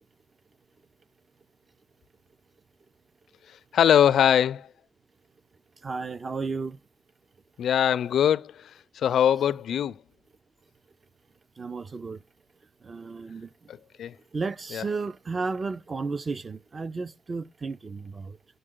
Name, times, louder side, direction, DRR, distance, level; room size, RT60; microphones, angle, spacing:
voice 1, 3.7-4.7 7.6-10.0 13.7-14.1 14.7-14.8, left 9 dB, 70° left, 0.4 m, -22 dB
voice 2, 5.8-6.8 11.6-12.2 12.8-13.7 14.3-18.4, right 4 dB, 30° right, 0.4 m, -33 dB
6.9 x 6.5 x 3.6 m
wide cardioid pair, 160°, 0 cm